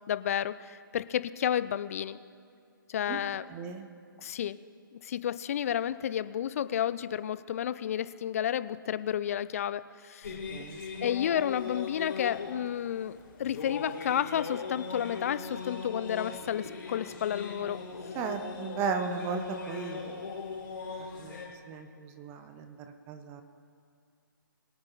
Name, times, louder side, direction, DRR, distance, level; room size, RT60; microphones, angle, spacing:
voice 1, 0.1-2.2 2.9-3.4 4.2-4.6 5.0-10.4 11.0-17.8, left 10 dB, 40° left, 15 dB, 0.5 m, -31 dB
voice 2, 3.5-3.9 10.3-11.1 18.1-20.2 21.2-21.3 21.7-22.8 23.1-23.4, right 5 dB, 20° right, 7 dB, 0.9 m, -36 dB
sound 1, 10.2-21.5, left 5 dB, 60° left, 3.7 m, -40 dB
22.5 x 8.8 x 4.0 m, 2.4 s
figure-of-eight pair, 140°, 11 cm